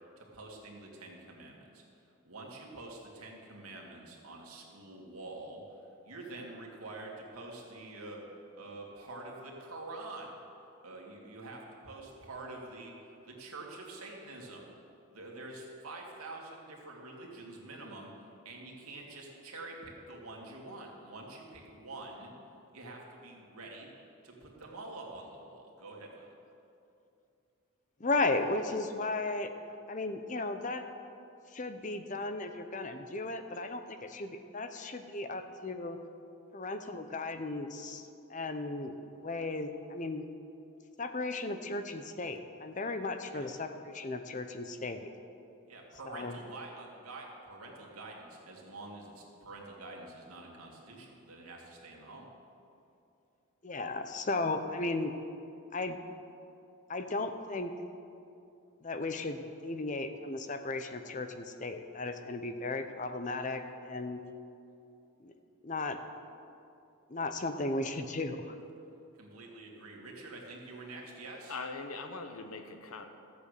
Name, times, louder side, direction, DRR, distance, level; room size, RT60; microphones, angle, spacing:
voice 1, 0.2-1.8 2.2-8.2 8.5-10.4 10.8-12.9 13.3-14.7 15.1-18.1 18.4-22.3 22.7-23.9 24.2-26.3 43.3-43.5 45.7-52.3 69.2-71.6, right 2 dB, 85° right, -1 dB, 2.3 m, -46 dB
voice 2, 28.0-29.5 29.9-30.8 31.5-36.0 36.5-40.2 41.0-45.1 46.0-46.4 53.6-55.1 55.7-56.0 56.9-57.7 58.8-64.2 65.2-65.3 65.6-66.0 67.1-68.5, left 2 dB, 35° left, 8 dB, 0.7 m, -35 dB
voice 3, 71.5-73.1, left 3 dB, 85° left, 6 dB, 1.1 m, -41 dB
13.5 x 8.3 x 6.7 m, 2.7 s
head